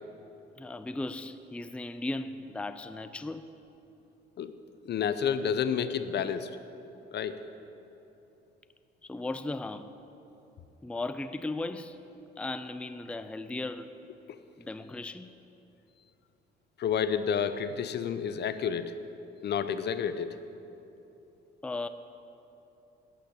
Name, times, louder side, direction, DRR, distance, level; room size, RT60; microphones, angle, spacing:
voice 1, 0.6-3.5 9.0-9.9 10.8-12.0 12.4-13.9 14.6-15.3 21.6-21.9, left 2 dB, 5° left, 0.4 m, -36 dB
voice 2, 4.9-6.5 7.1-7.3 16.8-18.9 19.4-20.4, left 7 dB, 60° left, 0.7 m, -30 dB
9.0 x 8.6 x 9.7 m
cardioid pair, 90°, 20 cm